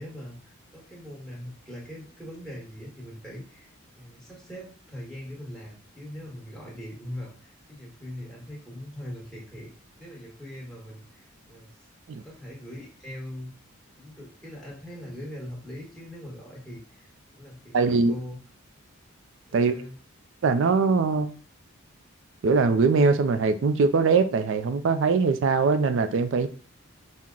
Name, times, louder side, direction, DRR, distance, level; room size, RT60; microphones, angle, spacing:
voice 1, 0.0-9.7 10.0-11.7 12.1-13.5 14.0-18.4 19.5-20.0, equal, ahead, 1.2 m, -41 dB
voice 2, 17.7-18.1 19.5-19.7 20.4-21.3 22.4-26.5, right 4 dB, 60° right, 0.4 m, -22 dB
5.8 x 2.1 x 3.7 m
head